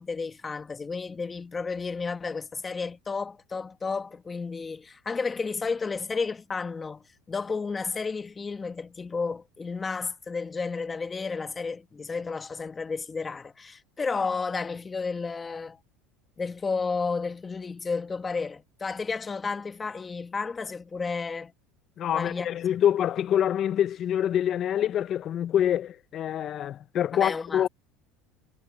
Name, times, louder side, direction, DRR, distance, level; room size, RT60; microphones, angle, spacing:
voice 1, 0.0-15.8 16.4-21.5 22.1-22.5 27.1-27.7, left 4 dB, 20° left, 1.3 m, -32 dB
voice 2, 22.0-27.7, left 10 dB, 40° left, 0.5 m, -26 dB
supercardioid pair, 120°, 0 cm